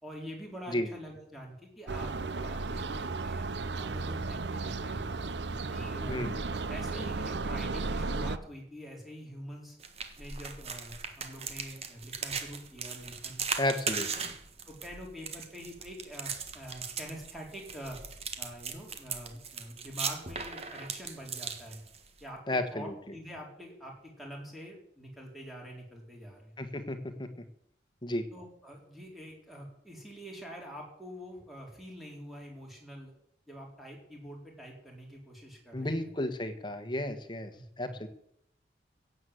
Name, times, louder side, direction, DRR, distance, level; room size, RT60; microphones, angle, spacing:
voice 1, 0.0-5.0 5.5-6.2 6.7-9.8 10.2-13.4 14.1-14.3 14.7-18.0 18.4-21.8 22.2-26.5 28.3-33.1 33.5-36.1 37.5-37.9, equal, ahead, -1 dB, 4.2 m, -45 dB
sound 1, 1.9-8.4, right 3 dB, 75° right, 0.7 m, -34 dB
sound 2, 9.8-22.2, right 6 dB, 35° right, 1.5 m, -38 dB
voice 2, 13.6-14.3 22.5-22.9 26.6-27.3 28.0-28.3 35.7-37.5 37.8-38.1, left 1 dB, 25° left, 9 dB, 1.5 m, -33 dB
16.5 x 8.0 x 7.9 m, 0.71 s
head